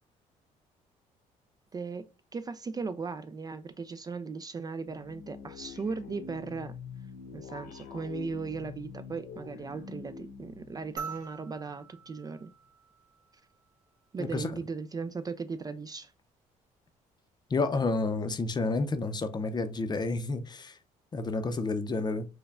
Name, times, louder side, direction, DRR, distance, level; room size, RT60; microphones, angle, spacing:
voice 1, 1.7-2.0 2.3-6.7 7.3-12.5 14.1-16.1, right 4 dB, 25° right, 0.4 m, -37 dB
sound 1, 4.9-12.0, left 6 dB, 90° left, 1.0 m, -46 dB
sound 2, 11.0-13.5 15.1-15.2, right 6 dB, 60° right, 1.6 m, -44 dB
voice 2, 14.2-14.5 17.5-20.8 21.1-22.3, left 3 dB, 30° left, 0.6 m, -30 dB
4.5 x 2.2 x 3.5 m
cardioid pair, 95°, 14 cm